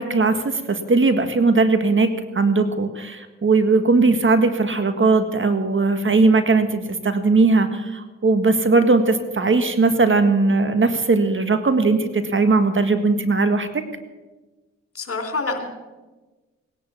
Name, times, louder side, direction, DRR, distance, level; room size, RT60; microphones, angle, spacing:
voice 1, 0.0-2.1 2.3-13.8, right 3 dB, 40° right, 9 dB, 1.8 m, -19 dB
voice 2, 14.9-15.7, left 3 dB, 50° left, 6 dB, 3.3 m, -26 dB
18.0 x 10.5 x 7.2 m, 1.2 s
supercardioid pair, 45°, 30 cm